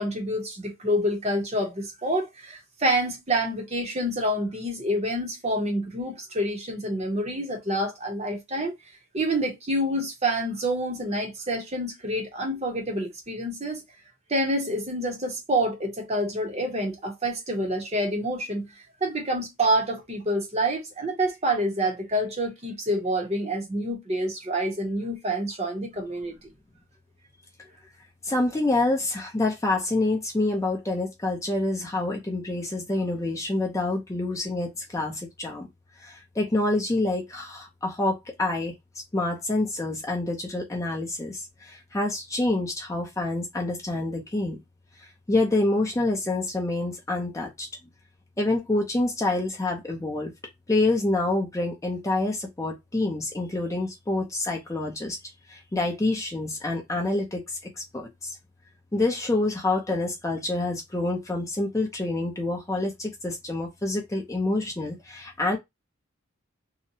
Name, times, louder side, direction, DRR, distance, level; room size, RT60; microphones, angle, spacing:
voice 1, 0.0-8.7 9.1-13.8 14.3-18.7 19.0-26.4, right 1 dB, 30° right, 0.8 m, -27 dB
voice 2, 28.2-35.7 36.0-38.7 39.1-44.6 45.0-47.7 48.4-50.3 50.7-55.2 55.5-58.4 58.9-65.6, left 2 dB, 15° left, 0.5 m, -27 dB
2.8 x 2.2 x 2.6 m
head